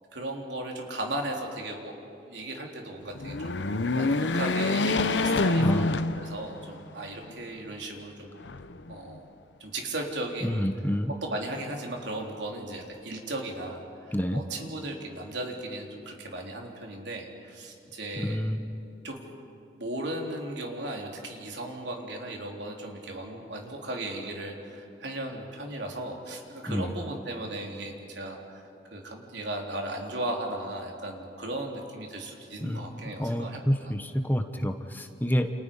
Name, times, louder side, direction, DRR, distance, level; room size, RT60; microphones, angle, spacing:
voice 1, 0.1-8.3 8.9-9.3 9.6-10.7 11.2-18.4 19.0-19.3 19.8-28.6 28.9-33.9, right 1 dB, 85° right, 1 dB, 3.8 m, -36 dB
sound 1, 3.1-6.7 7.2-7.3 8.4-9.2, left 3 dB, 85° left, 0.9 m, -26 dB
voice 2, 5.5-5.9 10.4-11.1 14.1-14.4 18.2-18.6 26.7-26.9 32.6-35.5, equal, 10° left, 7 dB, 1.0 m, -28 dB
29.5 x 29.0 x 5.6 m, 2.7 s
head